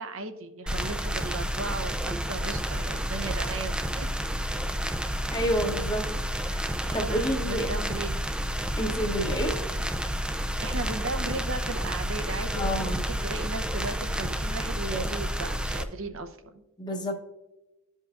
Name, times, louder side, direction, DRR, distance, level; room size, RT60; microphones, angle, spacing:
voice 1, 0.0-4.1 6.8-8.3 10.4-16.6, right 3 dB, 65° right, 7 dB, 0.7 m, -36 dB
sound 1, 0.7-15.8, equal, 5° right, 0.4 m, -30 dB
voice 2, 5.3-6.7 6.9-7.8 8.8-9.6 12.5-13.0 16.8-17.2, equal, 20° left, 2 dB, 0.9 m, -29 dB
14.0 x 5.5 x 2.4 m, 1.0 s
head